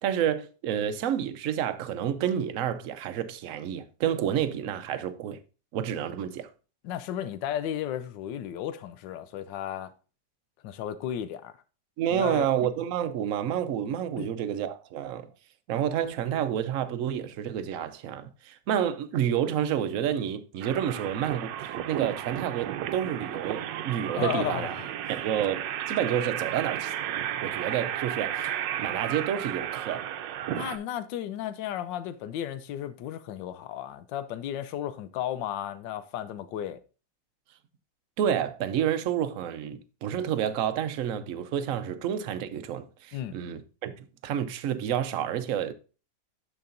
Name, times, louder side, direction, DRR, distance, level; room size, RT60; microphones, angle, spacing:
voice 1, 0.0-5.4 5.7-6.5 12.0-15.3 15.7-24.7 25.1-26.9 27.4-30.1 38.2-45.7, right 9 dB, 60° right, 0.9 m, -29 dB
voice 2, 6.8-9.9 10.6-11.5 12.1-12.5 14.2-14.3 24.1-24.9 30.5-36.8 43.1-43.3, left 10 dB, 85° left, 1.3 m, -34 dB
sound 1, 20.6-30.8, right 11 dB, 90° right, 1.3 m, -33 dB
12.5 x 4.8 x 2.5 m
omnidirectional pair, 1.9 m